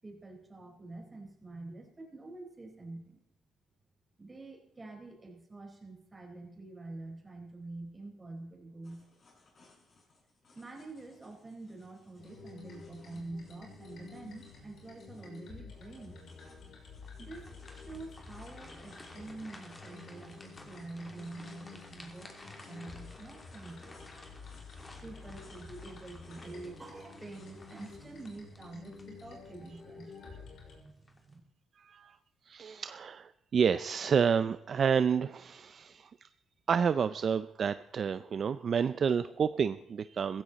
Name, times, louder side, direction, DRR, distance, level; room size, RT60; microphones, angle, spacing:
voice 1, 0.0-3.2 4.2-9.0 10.5-16.2 17.2-24.0 25.0-30.1 30.8-30.9 31.2-31.4, right 2 dB, 20° right, 2 dB, 4.4 m, -47 dB
sound 1, 8.8-28.4, left 3 dB, 45° left, 6.1 m, -64 dB
sound 2, 12.2-30.8, left 4 dB, 70° left, 6.0 m, -51 dB
sound 3, 17.0-29.6 30.1-30.3 30.9-31.3, left 2 dB, 20° left, 3.1 m, -55 dB
voice 2, 31.8-32.2 32.5-36.3 36.7-40.4, right 6 dB, 50° right, 13 dB, 0.5 m, -29 dB
16.0 x 15.5 x 4.1 m, 0.85 s
cardioid pair, 90°, 0 cm